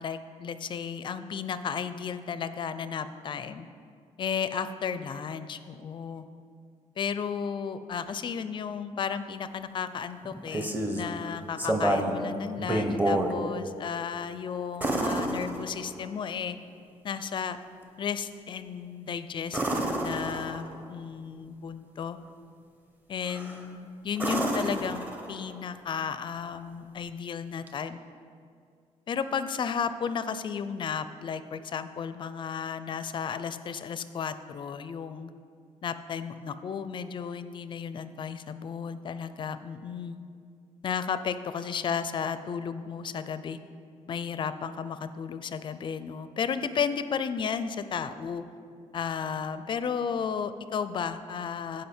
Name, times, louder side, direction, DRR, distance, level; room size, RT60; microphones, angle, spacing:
voice 1, 0.0-3.7 4.2-6.2 7.0-16.6 17.0-17.6 18.0-22.2 23.1-28.0 29.1-35.3 35.8-40.2 40.8-43.6 44.1-48.4 48.9-51.8, left 7 dB, 40° left, 12 dB, 0.4 m, -33 dB
sound 1, 10.2-11.1 11.6-12.2 12.6-13.3 14.8-16.1 19.5-20.8 23.3-23.6 24.1-25.5 27.7-27.8, right 1 dB, 15° right, 0.8 m, -29 dB
15.0 x 5.1 x 4.3 m, 2.3 s
cardioid pair, 150°, 12 cm